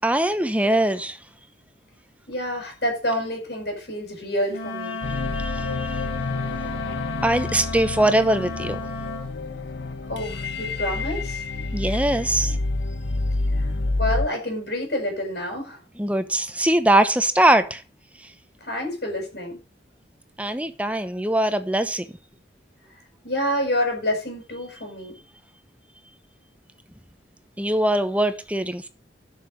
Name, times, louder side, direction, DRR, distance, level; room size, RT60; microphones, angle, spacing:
voice 1, 0.0-1.2 5.1-6.1 7.2-8.8 11.7-12.6 16.0-17.8 20.4-22.0 27.6-28.9, right 1 dB, 10° right, 1.0 m, -22 dB
voice 2, 2.3-5.0 10.1-11.4 13.5-13.7 14.0-15.8 18.6-19.6 23.2-25.2, left 1 dB, 60° left, 7.2 m, -28 dB
Wind instrument woodwind instrument, 4.5-9.3, left 3 dB, 45° left, 6.9 m, -33 dB
sound 1, 5.0-14.3, left 2 dB, 80° left, 1.1 m, -28 dB
11.5 x 6.8 x 6.5 m
head